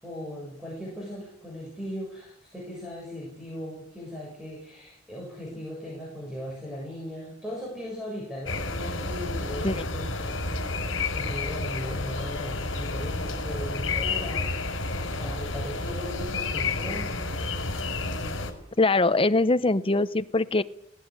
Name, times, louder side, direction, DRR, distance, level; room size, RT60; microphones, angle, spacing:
voice 1, 0.0-10.6 10.9-17.1, equal, 5° right, -4 dB, 7.6 m, -38 dB
sound 1, 8.5-18.5, left 3 dB, 75° left, 5.0 m, -30 dB
voice 2, 18.8-20.6, left 2 dB, 25° left, 12 dB, 0.8 m, -22 dB
19.0 x 18.0 x 9.7 m, 0.75 s
head